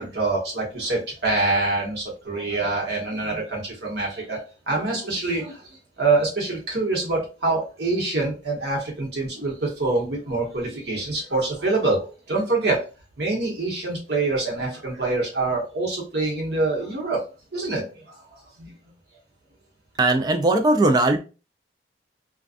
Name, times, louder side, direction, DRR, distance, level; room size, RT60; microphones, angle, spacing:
voice 1, 0.0-12.9 13.2-18.7, right 3 dB, 65° right, -2 dB, 1.0 m, -25 dB
voice 2, 20.0-21.2, right 2 dB, 20° right, 5 dB, 0.3 m, -19 dB
2.4 x 2.2 x 2.4 m, 0.33 s
head